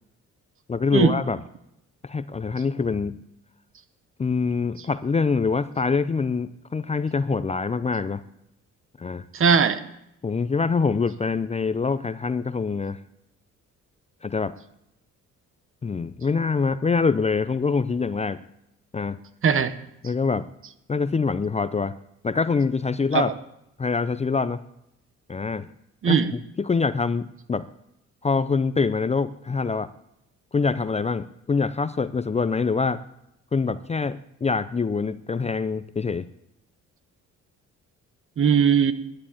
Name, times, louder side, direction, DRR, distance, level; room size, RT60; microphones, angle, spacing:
voice 1, 0.7-1.4 2.0-3.2 4.2-8.3 9.0-9.2 10.2-13.0 14.2-14.5 15.8-18.4 18.9-19.2 20.0-20.5 20.9-21.9 22.2-23.3 23.8-24.6 25.3-25.7 26.1-26.2 26.6-27.7 28.2-29.9 30.5-33.0 33.5-36.3, left 4 dB, 20° left, 14 dB, 0.5 m, -25 dB
voice 2, 9.3-9.8 19.4-19.7 23.1-23.3 26.0-26.3 38.4-38.9, right 6 dB, 45° right, 13 dB, 1.1 m, -19 dB
11.0 x 9.8 x 8.9 m, 0.81 s
cardioid pair, 90°, 30 cm